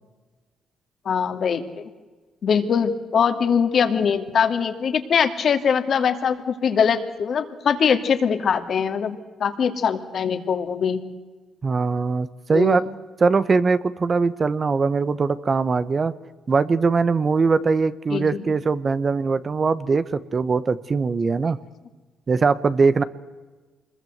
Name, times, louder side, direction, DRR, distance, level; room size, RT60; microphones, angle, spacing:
voice 1, 1.1-1.6 2.4-11.0 12.5-12.8 18.1-18.3, left 7 dB, 55° left, 8 dB, 2.4 m, -22 dB
voice 2, 11.6-12.8 13.2-16.1 16.5-21.6 22.3-23.0, right 4 dB, 35° right, 15 dB, 1.1 m, -21 dB
25.5 x 21.5 x 8.0 m, 1.3 s
cardioid pair, 90°, 0 cm